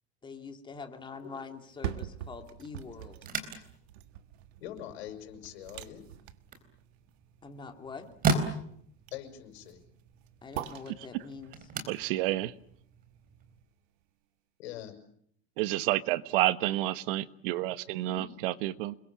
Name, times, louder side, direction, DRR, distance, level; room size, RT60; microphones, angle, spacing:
voice 1, 0.2-3.2 7.4-8.1 10.4-11.5, left 5 dB, 15° left, 6 dB, 2.5 m, -44 dB
sound 1, 1.5-13.6 14.0-14.1, right 12 dB, 75° right, 1.6 m, -45 dB
sound 2, 3.1-13.6, right 4 dB, 25° right, 3.9 m, -38 dB
voice 2, 4.6-6.0 9.1-9.8 14.6-14.9 17.9-18.3, left 11 dB, 70° left, 7 dB, 6.7 m, -43 dB
voice 3, 11.9-12.5 15.6-18.9, right 16 dB, 60° right, 14 dB, 1.3 m, -29 dB
29.0 x 22.0 x 7.4 m, 0.67 s
supercardioid pair, 150°, 33 cm